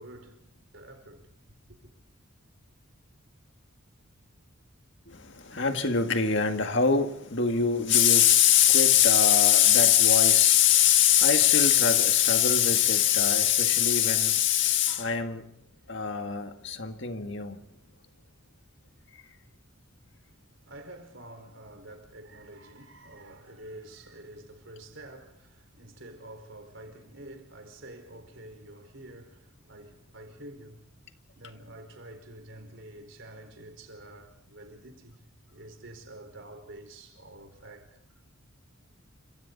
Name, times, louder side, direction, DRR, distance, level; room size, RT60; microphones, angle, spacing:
voice 1, 0.0-1.9 20.0-31.0 31.3-35.2 35.5-38.3, right 1 dB, 60° right, 4.9 m, -48 dB
voice 2, 5.1-15.5 15.9-17.6, left 9 dB, 55° left, 1.9 m, -22 dB
29.5 x 27.0 x 4.1 m
head